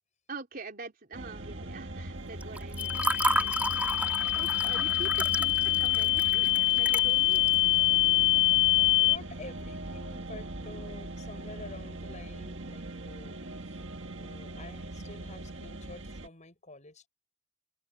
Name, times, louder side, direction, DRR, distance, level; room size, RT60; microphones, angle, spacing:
voice 1, 0.3-3.6 4.3-7.5, right 3 dB, 50° right, 3.8 m, -45 dB
sound 1, 1.1-16.3, right 1 dB, 70° right, 2.0 m, -41 dB
Water / Fill (with liquid), 2.4-7.5, right 1 dB, 10° right, 2.5 m, -32 dB
sound 2, 2.8-9.2, left 18 dB, 70° left, 0.5 m, -25 dB
voice 2, 9.0-13.4 13.7-13.8 14.2-17.1, left 2 dB, 40° left, 7.5 m, -49 dB
open air
head